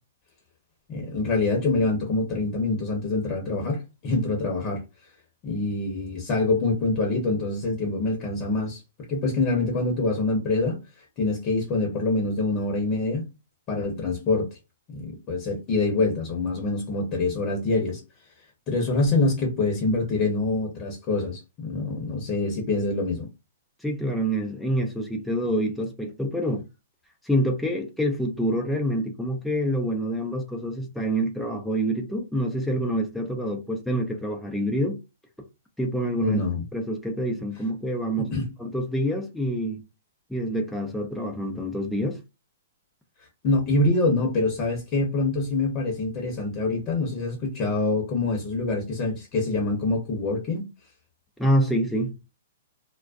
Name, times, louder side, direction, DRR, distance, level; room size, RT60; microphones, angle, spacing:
voice 1, 0.9-4.8 5.4-8.8 9.1-10.8 11.2-13.3 13.7-14.5 14.9-18.0 18.7-23.3 36.2-36.6 38.2-38.4 43.4-50.6, left 2 dB, 35° left, 0.8 m, -25 dB
voice 2, 23.8-26.6 27.2-35.0 35.8-36.4 36.7-38.3 38.6-39.8 40.3-42.2 51.4-52.1, equal, ahead, 0.5 m, -26 dB
2.3 x 2.1 x 2.5 m
hypercardioid pair, 130°, 0 cm